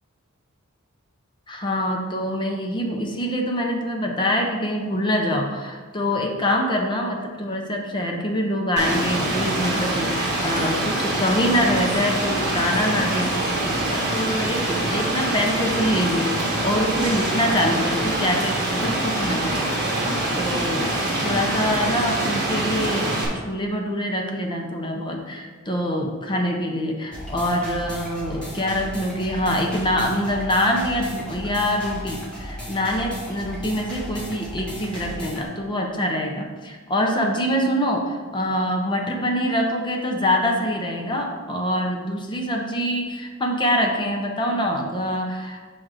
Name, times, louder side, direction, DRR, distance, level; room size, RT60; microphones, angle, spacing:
voice 1, 1.5-19.7 20.0-23.1 23.5-45.6, equal, 20° left, 1 dB, 0.7 m, -25 dB
Rain, 8.8-23.3, right 1 dB, 50° right, 1.5 m, -24 dB
sound 1, 27.1-35.5, equal, 5° left, 1.2 m, -35 dB
6.0 x 3.8 x 4.8 m, 1.4 s
head